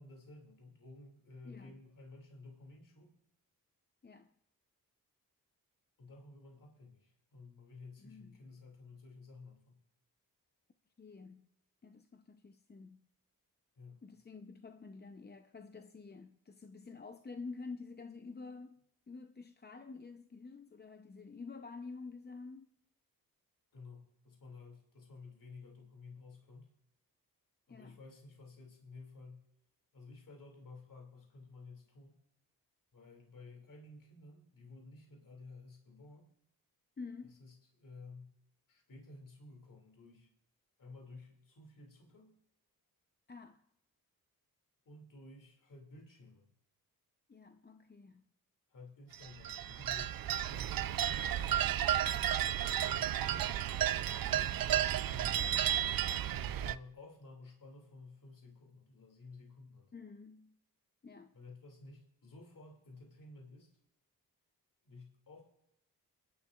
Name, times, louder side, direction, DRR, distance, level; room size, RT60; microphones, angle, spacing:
voice 1, 0.0-3.2 6.0-9.8 13.8-14.0 23.7-26.7 27.7-29.4 29.9-32.2 32.9-36.3 37.2-38.3 38.7-40.3 40.8-42.4 44.9-46.5 48.7-50.7 52.9-55.5 56.2-59.9 61.3-63.8 64.8-65.4, left 3 dB, 60° left, 2.6 m, -54 dB
voice 2, 1.4-1.8 4.0-4.3 8.0-8.4 11.0-11.5 11.8-13.1 14.0-18.8 19.1-22.7 27.7-28.0 37.0-37.4 43.3-43.6 47.3-48.2 59.9-60.6 61.0-61.3, left 4 dB, 25° left, 0.7 m, -49 dB
sound 1, 49.1-56.8, right 11 dB, 70° right, 0.5 m, -33 dB
29.5 x 11.0 x 2.4 m
cardioid pair, 65°, 36 cm